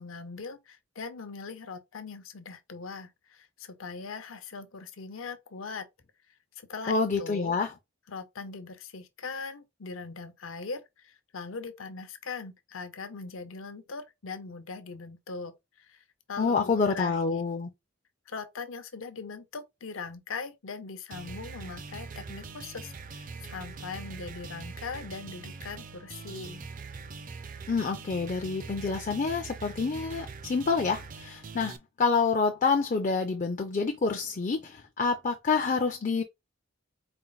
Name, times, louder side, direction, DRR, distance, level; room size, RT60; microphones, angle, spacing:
voice 1, 0.0-5.9 6.7-7.6 8.1-15.5 15.8-16.0 16.3-17.4 18.3-26.6, left 4 dB, 75° left, 0.7 m, -40 dB
voice 2, 6.9-7.7 16.4-17.7 27.7-36.2, left 4 dB, 35° left, 0.4 m, -27 dB
sound 1, 21.1-31.8, right 4 dB, 40° right, 0.4 m, -43 dB
4.3 x 2.0 x 3.9 m
head